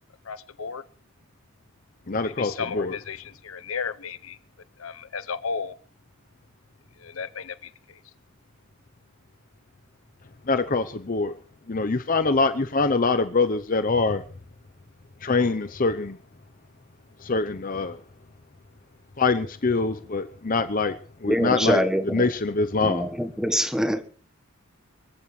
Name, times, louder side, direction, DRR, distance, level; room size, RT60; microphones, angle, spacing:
voice 1, 0.2-0.8 2.1-4.4 4.8-5.8 7.0-8.0, left 5 dB, 75° left, 0.8 m, -34 dB
voice 2, 2.1-2.9 10.5-11.3 11.7-14.2 15.2-16.2 17.2-18.0 19.2-20.9 21.2-21.8 22.1-23.1, left 3 dB, 40° left, 0.7 m, -24 dB
voice 3, 21.3-22.3 22.8-24.0, equal, 5° right, 1.3 m, -24 dB
24.5 x 14.5 x 3.2 m
head